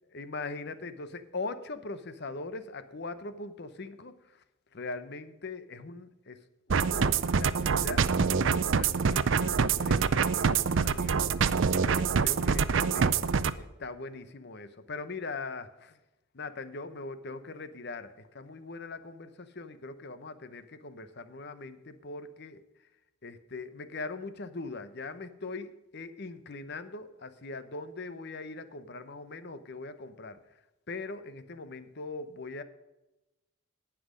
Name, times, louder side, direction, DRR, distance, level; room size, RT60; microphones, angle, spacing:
voice 1, 0.1-4.4 4.7-6.4 6.7-11.2 11.7-13.2 13.5-16.0 16.3-22.6 23.2-30.4 30.9-32.6, left 3 dB, 55° left, 12 dB, 0.8 m, -41 dB
sound 1, 6.7-13.5, right 5 dB, 60° right, 0.5 m, -26 dB
18.0 x 6.0 x 5.1 m, 0.99 s
head